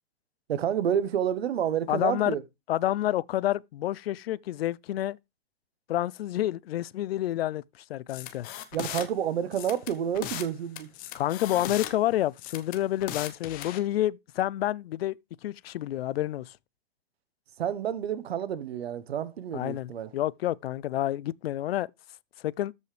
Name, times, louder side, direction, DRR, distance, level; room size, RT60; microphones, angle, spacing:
voice 1, 0.5-2.4 8.7-10.9 17.6-20.1, right 9 dB, 75° right, 1.1 m, -29 dB
voice 2, 1.9-2.4 2.7-5.2 5.9-7.6 7.9-8.5 11.1-15.1 15.4-16.5 19.5-21.9 22.4-22.7, left 13 dB, 70° left, 0.5 m, -29 dB
sound 1, 8.1-9.1 9.5-10.5 10.8-11.9 12.4-13.8, left 12 dB, 30° left, 0.9 m, -37 dB
13.5 x 5.5 x 3.3 m
hypercardioid pair, 135°, 31 cm